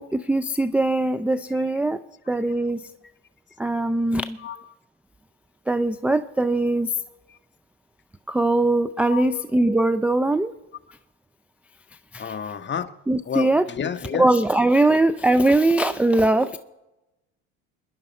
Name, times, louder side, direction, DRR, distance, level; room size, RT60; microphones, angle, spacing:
voice 1, 0.0-2.0 2.3-2.8 3.6-4.4 5.7-6.9 8.3-10.5 12.1-12.3 13.1-13.7 14.2-16.6, right 2 dB, 5° right, 12 dB, 0.4 m, -21 dB
voice 2, 9.1-9.4 12.2-12.9 13.3-14.3, left 7 dB, 30° left, 10 dB, 1.0 m, -30 dB
23.5 x 10.5 x 4.3 m, 0.98 s
hypercardioid pair, 80°, 37 cm